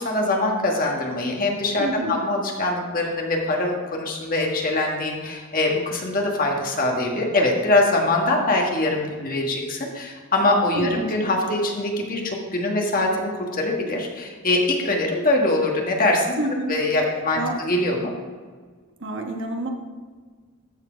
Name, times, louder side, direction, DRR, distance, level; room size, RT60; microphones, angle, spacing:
voice 1, 0.0-16.3 16.7-18.1, left 2 dB, 40° left, 0 dB, 1.5 m, -23 dB
voice 2, 1.8-2.2 10.7-11.1 16.4-16.8 17.3-17.6 19.0-19.7, right 1 dB, 55° right, 2 dB, 1.2 m, -28 dB
13.5 x 4.6 x 5.0 m, 1.5 s
head